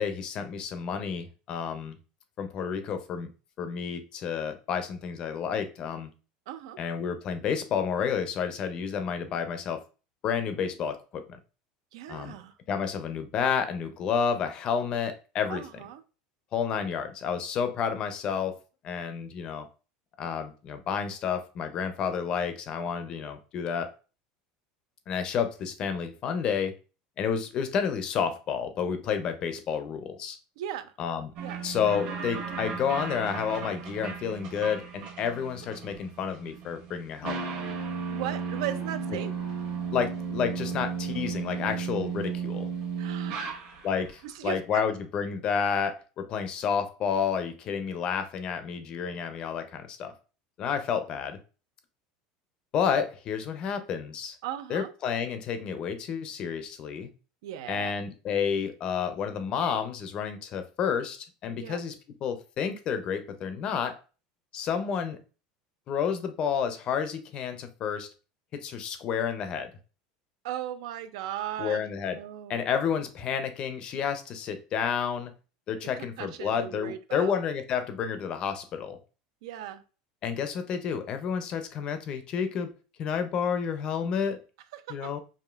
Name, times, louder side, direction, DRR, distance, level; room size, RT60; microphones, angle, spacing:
voice 1, 0.0-2.0 2.4-3.3 3.6-6.1 6.8-9.8 10.2-11.4 12.1-12.3 12.7-15.6 16.5-18.6 18.8-19.7 20.2-23.9 25.1-26.8 27.2-30.4 31.0-31.3 31.6-37.5 39.9-42.7 43.8-50.1 50.6-51.4 52.7-54.3 54.7-57.1 57.7-61.9 62.2-64.0 64.5-65.2 65.9-68.1 68.5-69.7 71.6-72.2 72.5-75.3 75.7-79.0 80.2-82.7 83.0-84.4 84.9-85.2, left 7 dB, 30° left, 9 dB, 0.5 m, -30 dB
voice 2, 6.5-6.8 11.9-12.5 15.5-16.0 30.6-30.9 31.4-31.6 38.1-39.3 43.0-43.6 44.2-44.8 54.4-54.9 57.4-57.9 61.6-61.8 70.4-71.8 72.1-72.6 76.0-77.3 79.4-79.8 84.7-85.1, right 11 dB, 90° right, 11 dB, 0.5 m, -37 dB
sound 1, 31.4-44.1, right 6 dB, 55° right, 1.2 m, -35 dB
4.9 x 2.7 x 2.3 m, 0.34 s
cardioid pair, 170°, 3 cm